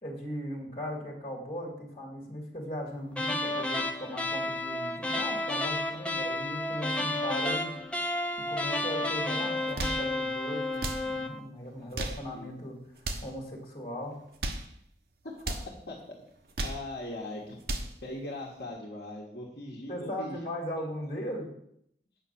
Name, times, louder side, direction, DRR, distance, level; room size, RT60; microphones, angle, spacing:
voice 1, 0.0-7.7 8.4-12.8 13.2-14.2 19.9-21.5, equal, 35° left, 0 dB, 2.9 m, -38 dB
sound 1, 3.1-11.4, left 1 dB, 5° left, 0.6 m, -31 dB
sound 2, 9.6-10.1 10.7-11.1 11.8-12.3 13.0-13.3 14.2-14.7 15.4-15.7 16.3-16.9 17.4-18.0, right 2 dB, 55° right, 1.1 m, -35 dB
voice 2, 11.7-12.0 12.3-12.5 15.2-15.6 15.9-16.0 16.6-17.6 18.0-20.5 20.8-20.9 21.2-21.3, left 1 dB, 65° left, -2 dB, 1.5 m, -40 dB
8.8 x 5.7 x 7.2 m, 0.71 s
head